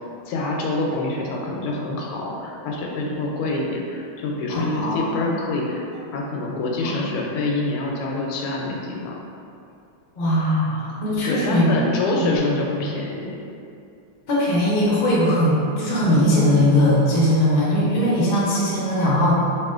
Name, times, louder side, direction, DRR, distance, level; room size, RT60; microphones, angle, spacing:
voice 1, 0.3-5.8 6.1-9.2 11.2-13.4, left 2 dB, 85° left, -1 dB, 1.5 m, -26 dB
voice 2, 4.5-5.3 6.8-7.0 10.1-11.7 12.2-12.4 14.3-19.3, left 1 dB, 60° left, -8 dB, 0.5 m, -20 dB
4.7 x 2.8 x 2.4 m, 2.5 s
omnidirectional pair, 2.4 m